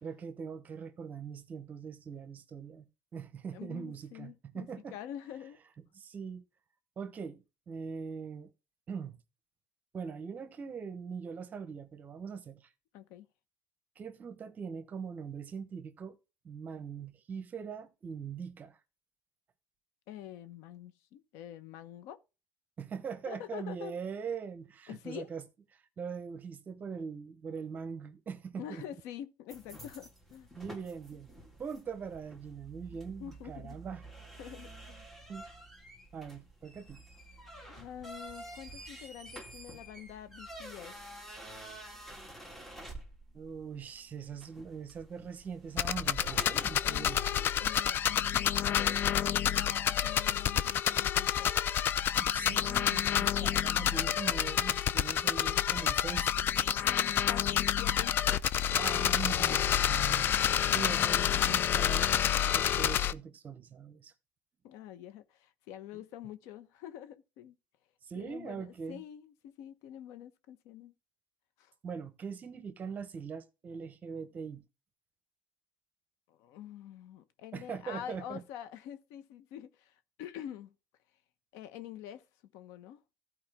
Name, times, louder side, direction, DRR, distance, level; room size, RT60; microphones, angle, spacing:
voice 1, 0.0-5.0 5.9-6.4 7.0-8.5 8.9-9.2 9.9-12.7 13.9-16.2 16.4-18.8 22.8-25.4 25.7-28.8 30.5-31.3 31.6-34.0 35.3-35.4 36.1-37.0 43.3-47.3 52.2-56.4 58.7-60.3 60.7-62.1 62.4-64.1 68.0-69.0 71.8-74.6 77.5-78.4, right 6 dB, 35° right, 1.1 m, -42 dB
voice 2, 3.5-5.6 12.9-13.3 20.1-22.2 23.3-23.9 24.9-25.3 28.6-30.5 33.2-33.8 34.4-35.1 37.7-41.0 46.8-47.1 47.6-51.5 56.8-58.2 59.5-59.7 64.6-67.6 68.1-70.9 71.6-71.7 76.3-80.7 81.5-82.2 82.5-83.0, left 11 dB, 85° left, 1.0 m, -46 dB
sound 1, 29.5-47.6, right 1 dB, 5° left, 2.0 m, -49 dB
sound 2, 45.8-63.1, left 10 dB, 45° left, 0.5 m, -28 dB
14.5 x 4.9 x 3.6 m
cardioid pair, 135°, 5 cm